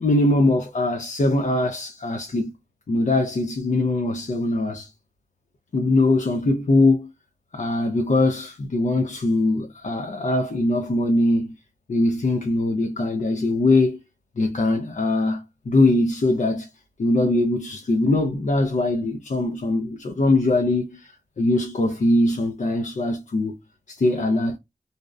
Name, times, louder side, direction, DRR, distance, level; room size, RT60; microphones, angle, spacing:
voice 1, 0.0-2.5 2.9-4.9 5.7-7.1 7.5-11.6 11.9-14.0 14.4-16.7 17.0-23.6 23.9-24.6, left 2 dB, 65° left, 0.5 m, -22 dB
2.6 x 2.0 x 2.3 m
wide cardioid pair, 55°, 14 cm